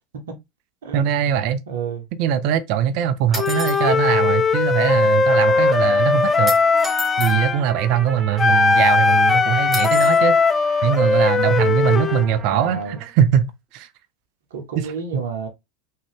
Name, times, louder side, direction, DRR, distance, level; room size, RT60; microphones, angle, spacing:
voice 1, 0.9-1.6 2.2-6.6 7.2-10.4 10.8-13.9 14.8-14.9, right 9 dB, 55° right, 0.4 m, -21 dB
voice 2, 1.7-2.1 12.1-13.0 14.5-15.5, right 5 dB, 70° right, 0.8 m, -30 dB
sound 1, 3.3-3.8 6.5-7.4 9.7-10.2, equal, 5° right, 1.5 m, -31 dB
Wind instrument woodwind instrument, 3.4-7.6 8.4-12.3, left 4 dB, 25° left, 0.3 m, -18 dB
Trumpet, 5.3-13.1, right 4 dB, 30° right, 0.8 m, -36 dB
3.6 x 2.1 x 3.4 m
figure-of-eight pair, 80°, 0 cm